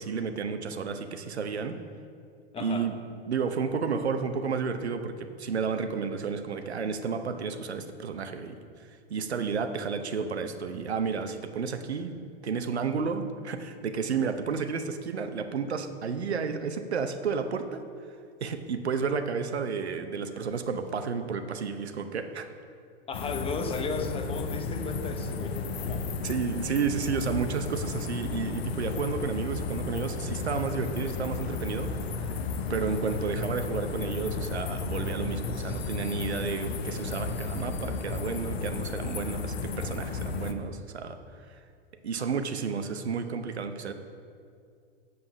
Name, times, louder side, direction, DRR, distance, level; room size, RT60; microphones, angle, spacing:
voice 1, 0.0-1.8 2.6-3.0 3.3-8.6 9.1-12.2 12.4-17.8 18.4-22.5 26.2-32.3 32.7-41.2 42.0-43.9, right 5 dB, 85° right, 8 dB, 0.8 m, -31 dB
voice 2, 2.5-2.9 23.1-26.1, left 4 dB, 15° left, 6 dB, 0.8 m, -34 dB
sound 1, 23.1-40.5, left 4 dB, 70° left, 0.9 m, -33 dB
7.9 x 5.6 x 7.0 m, 2.3 s
hypercardioid pair, 105°, 32 cm